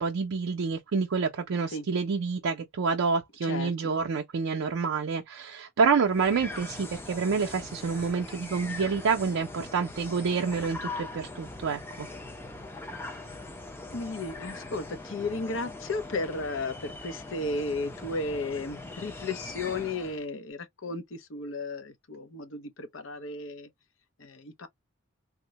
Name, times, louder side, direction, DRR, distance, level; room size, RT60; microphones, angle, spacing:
voice 1, 0.0-12.1, right 5 dB, 80° right, 0.4 m, -28 dB
voice 2, 3.4-3.9 13.9-23.7 24.2-24.7, left 3 dB, 70° left, 0.6 m, -34 dB
sound 1, 6.0-20.3, left 2 dB, 10° left, 0.4 m, -41 dB
3.6 x 2.0 x 2.8 m
head